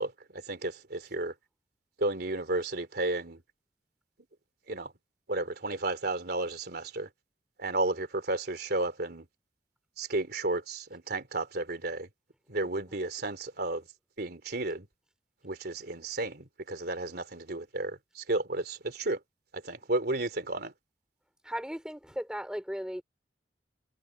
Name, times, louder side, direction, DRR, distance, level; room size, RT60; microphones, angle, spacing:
voice 1, 0.0-1.3 2.0-3.4 4.7-4.9 5.3-7.1 7.6-9.3 10.0-12.1 12.5-13.8 14.2-14.9 15.4-19.2 19.5-20.7, right 2 dB, 60° right, 3.4 m, -32 dB
voice 2, 21.4-23.0, equal, 5° right, 5.2 m, -36 dB
head